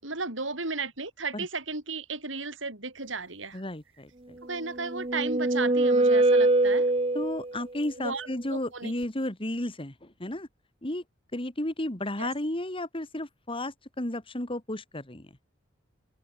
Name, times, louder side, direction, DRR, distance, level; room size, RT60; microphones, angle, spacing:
voice 1, 0.0-3.6 4.4-6.9 8.0-8.9 12.2-12.3, right 4 dB, 85° right, 6.9 m, -34 dB
voice 2, 3.5-4.4 7.1-10.5 10.8-11.0 11.3-15.3, left 1 dB, 30° left, 2.5 m, -33 dB
sound 1, 4.5-7.6, right 2 dB, 30° right, 1.4 m, -23 dB
head